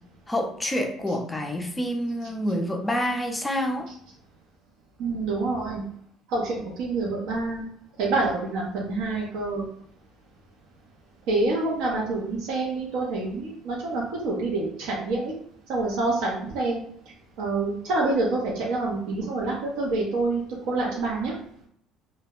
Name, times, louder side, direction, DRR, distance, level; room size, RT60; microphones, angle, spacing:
voice 1, 0.3-3.9, equal, 10° left, 4 dB, 0.3 m, -27 dB
voice 2, 5.0-5.8 6.3-7.7 8.0-9.6 11.3-15.3 15.7-16.8 17.4-21.3, right 2 dB, 75° right, -3 dB, 0.6 m, -27 dB
2.1 x 2.0 x 3.5 m, 0.65 s
cardioid pair, 140°, 0 cm